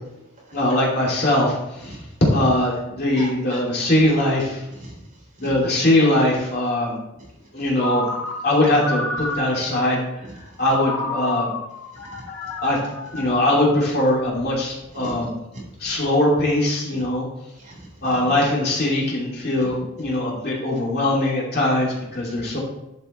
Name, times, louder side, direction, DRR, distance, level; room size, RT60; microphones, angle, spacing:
voice 1, 0.5-2.0 2.3-4.6 5.4-7.0 7.5-8.0 8.4-10.1 10.6-11.6 12.6-12.8 13.1-15.3 15.8-17.3 18.0-22.6, left 1 dB, 50° left, -4 dB, 2.8 m, -21 dB
voice 2, 3.2-4.1 4.7-5.0 5.4-5.5 7.1-7.3 7.6-7.7 11.9-12.5 15.0-15.2 15.5-15.6 17.0-17.1 17.6-18.1, right 1 dB, 35° right, -4 dB, 3.6 m, -40 dB
Ringtone, 7.8-9.9 10.7-14.0, left 2 dB, 85° left, 1.5 m, -31 dB
11.0 x 5.6 x 4.4 m, 0.90 s
head